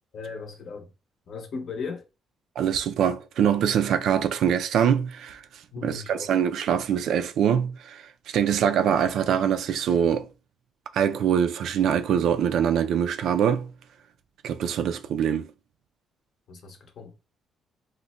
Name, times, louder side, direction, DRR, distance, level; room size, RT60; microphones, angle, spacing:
voice 1, 0.1-0.9 1.3-2.0 5.7-6.3 16.5-17.1, left 5 dB, 50° left, 0.7 m, -37 dB
voice 2, 2.6-10.3 10.9-13.7 14.4-15.5, right 8 dB, 65° right, 0.3 m, -24 dB
2.5 x 2.1 x 3.9 m
cardioid pair, 155°, 0 cm